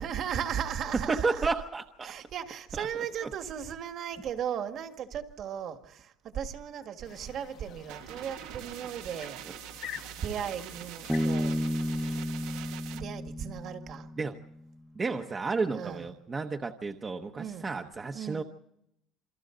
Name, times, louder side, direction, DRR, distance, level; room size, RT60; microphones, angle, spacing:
voice 1, 0.0-1.5 2.0-11.6 12.9-14.1 15.7-16.3 17.3-17.8 18.1-18.4, right 8 dB, 45° right, 1.8 m, -36 dB
voice 2, 1.1-2.1 2.8-2.9 14.2-14.4 14.9-18.4, right 4 dB, 20° right, 1.0 m, -32 dB
sound 1, 7.0-12.2, left 10 dB, 55° left, 1.3 m, -48 dB
sound 2, 7.9-13.0, right 11 dB, 90° right, 1.9 m, -44 dB
Bass guitar, 11.1-14.6, equal, ahead, 0.9 m, -32 dB
28.0 x 25.0 x 3.9 m
cardioid pair, 155°, 0 cm